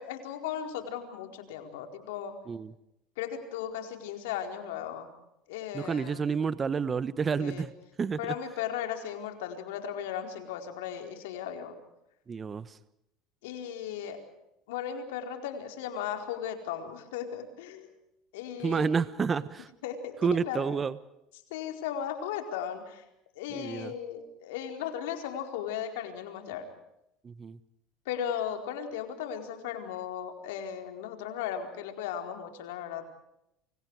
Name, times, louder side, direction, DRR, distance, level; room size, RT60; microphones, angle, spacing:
voice 1, 0.0-2.4 3.2-5.1 5.5-6.2 7.4-7.7 8.2-11.8 13.4-14.2 14.7-17.9 18.3-18.9 19.8-20.8 21.5-23.0 23.3-26.7 28.1-33.1, left 9 dB, 85° left, 5 dB, 4.5 m, -36 dB
voice 2, 5.7-7.7 8.0-8.3 12.3-12.8 18.6-19.7 20.2-21.0 23.5-23.9 27.2-27.6, right 5 dB, 30° right, 15 dB, 1.2 m, -30 dB
29.5 x 26.5 x 4.9 m, 0.82 s
supercardioid pair, 95°, 0 cm